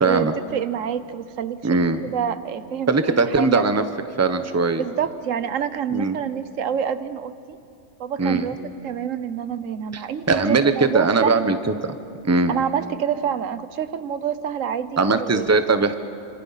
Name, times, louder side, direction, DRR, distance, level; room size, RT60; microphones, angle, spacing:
voice 1, 0.0-0.3 1.6-2.0 2.9-3.8 4.2-4.8 5.9-6.2 8.2-8.5 9.9-10.0 10.3-11.6 11.8-11.9 12.2-12.5 15.0-16.0, right 3 dB, 15° right, 9 dB, 0.8 m, -20 dB
voice 2, 0.5-1.6 2.0-3.6 4.8-7.6 8.0-8.6 8.8-11.5 12.5-15.5, right 8 dB, 70° right, 13 dB, 1.2 m, -27 dB
27.0 x 26.0 x 5.7 m, 2.6 s
omnidirectional pair, 1.4 m